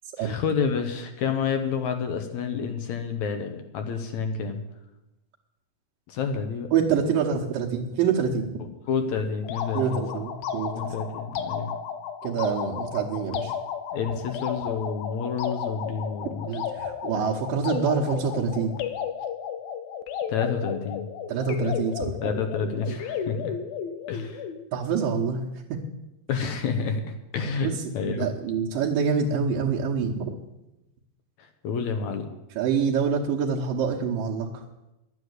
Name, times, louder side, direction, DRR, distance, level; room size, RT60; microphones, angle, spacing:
voice 1, 0.2-4.6 6.1-6.7 8.9-10.0 10.7-11.7 13.9-16.5 20.3-21.1 21.6-21.7 22.2-23.6 24.1-24.4 26.3-28.3 31.4-32.3, left 6 dB, 65° left, 6 dB, 2.0 m, -29 dB
voice 2, 6.7-8.6 9.7-10.9 12.2-13.5 16.5-18.7 21.3-22.1 24.7-25.4 25.7-25.8 27.6-30.4 32.6-34.6, right 6 dB, 75° right, -3 dB, 2.7 m, -26 dB
sound 1, 9.4-24.7, left 8 dB, 90° left, 2.8 m, -33 dB
11.5 x 9.9 x 8.0 m, 0.94 s
omnidirectional pair, 4.2 m